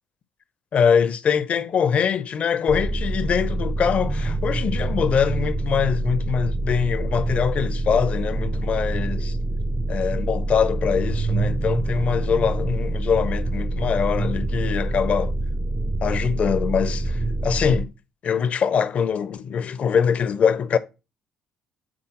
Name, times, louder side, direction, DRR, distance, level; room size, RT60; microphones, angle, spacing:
voice 1, 0.7-9.4 9.9-15.4 16.0-17.9 18.2-20.8, left 7 dB, 45° left, 0.6 m, -23 dB
sound 1, 2.7-17.9, right 2 dB, 25° right, 0.4 m, -26 dB
8.8 x 4.0 x 2.9 m
figure-of-eight pair, 50°, 3 cm